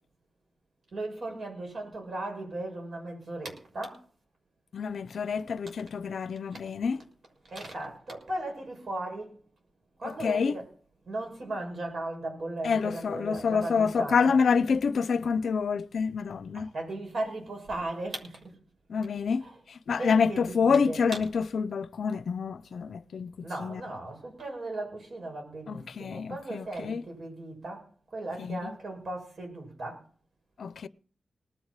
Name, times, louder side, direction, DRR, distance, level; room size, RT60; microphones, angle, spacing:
voice 1, 0.9-4.0 7.4-9.3 10.0-10.7 11.1-14.4 16.5-18.6 20.0-21.0 23.4-27.8 28.1-30.0, right 2 dB, 65° right, 6.3 m, -37 dB
voice 2, 4.7-7.0 10.0-10.5 12.6-16.7 18.9-23.8 25.7-27.0 28.4-28.7 30.6-30.9, left 5 dB, 80° left, 0.5 m, -27 dB
19.0 x 6.4 x 7.4 m
cardioid pair, 75°, 0 cm